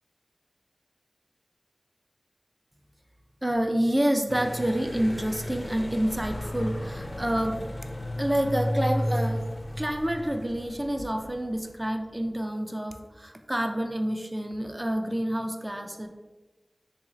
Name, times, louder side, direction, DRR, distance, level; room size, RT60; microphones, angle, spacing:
voice 1, 3.4-7.6 8.2-9.5 9.8-16.1, right 1 dB, 20° right, 4 dB, 0.4 m, -28 dB
sound 1, 4.3-11.9, equal, 50° left, 0.4 m, -33 dB
3.1 x 2.7 x 3.8 m, 1.1 s
wide cardioid pair, 50°, 0 cm